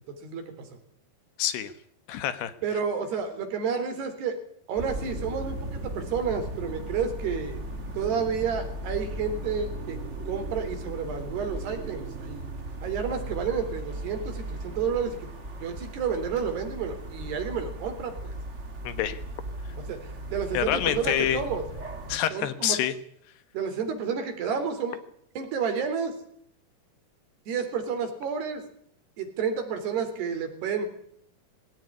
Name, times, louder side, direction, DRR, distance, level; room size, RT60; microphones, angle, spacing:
voice 1, 0.1-0.8 2.6-4.4 4.7-7.6 8.0-10.0 10.3-12.5 12.8-15.3 15.6-18.4 19.8-21.6 22.3-22.8 23.5-25.0 25.4-26.2 27.5-28.6 29.2-30.9, right 6 dB, 85° right, 6 dB, 5.6 m, -30 dB
voice 2, 1.4-1.7 2.1-2.5 18.8-19.2 20.5-21.4 22.1-22.9, left 11 dB, 85° left, 13 dB, 3.6 m, -27 dB
sound 1, 4.8-22.2, right 1 dB, 25° right, 1.8 m, -37 dB
21.5 x 17.0 x 9.8 m, 0.67 s
omnidirectional pair, 4.6 m